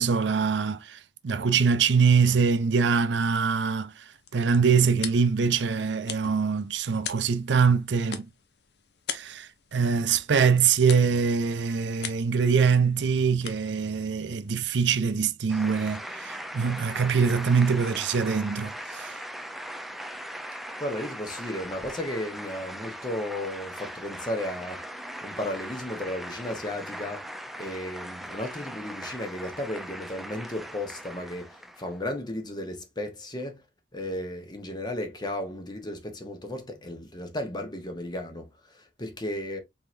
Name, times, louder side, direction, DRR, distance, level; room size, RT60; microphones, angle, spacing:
voice 1, 0.0-4.0 4.3-8.3 9.1-19.2, right 5 dB, 90° right, 0.5 m, -24 dB
sound 1, 3.9-15.2, left 8 dB, 75° left, 0.8 m, -43 dB
sound 2, 15.5-32.0, equal, ahead, 0.4 m, -39 dB
voice 2, 20.8-24.9 25.2-27.3 27.6-33.6 33.9-39.6, left 1 dB, 25° left, 0.9 m, -34 dB
4.3 x 3.7 x 2.5 m
head